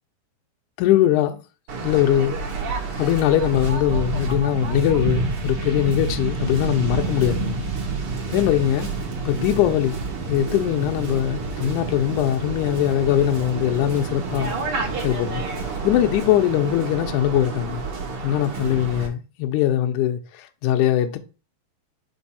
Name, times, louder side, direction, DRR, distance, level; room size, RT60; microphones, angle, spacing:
voice 1, 0.8-1.4 1.8-2.4 3.0-7.6 8.3-8.9 9.3-10.0 10.3-14.5 15.0-15.4 15.8-17.8 18.2-21.2, left 11 dB, 80° left, 1.9 m, -21 dB
Waves surf, 1.7-19.1, right 4 dB, 55° right, 1.6 m, -28 dB
5.3 x 3.5 x 5.6 m
omnidirectional pair, 4.2 m